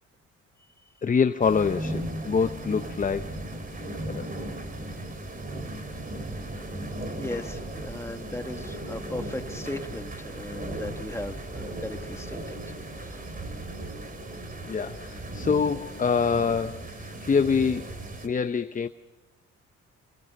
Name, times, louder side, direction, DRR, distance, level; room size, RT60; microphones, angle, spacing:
voice 1, 1.0-3.3 4.1-4.3 7.3-7.4 14.6-17.9 18.2-18.9, left 5 dB, 25° left, 10 dB, 0.7 m, -25 dB
sound 1, 1.4-18.3, right 1 dB, 30° right, 3.0 m, -36 dB
voice 2, 7.2-12.4 13.0-13.2, left 2 dB, 10° left, 6 dB, 1.6 m, -37 dB
26.5 x 21.0 x 6.6 m, 1.1 s
cardioid pair, 90°, 30 cm